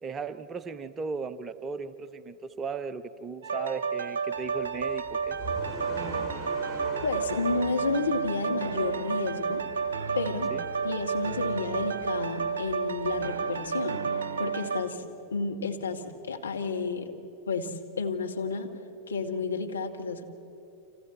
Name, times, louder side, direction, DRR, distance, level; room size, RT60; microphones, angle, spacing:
voice 1, 0.0-5.4 10.5-10.6, right 4 dB, 20° right, 12 dB, 0.8 m, -36 dB
sound 1, 3.4-14.8, right 5 dB, 65° right, 0.9 m, -31 dB
sound 2, 4.4-13.3, right 1 dB, 5° right, 3.1 m, -44 dB
voice 2, 7.0-9.7 10.1-10.5 10.8-17.1 17.5-18.7 19.1-20.2, left 4 dB, 75° left, 3 dB, 1.5 m, -31 dB
30.0 x 26.0 x 4.3 m, 3.0 s
figure-of-eight pair, 90°, 0 cm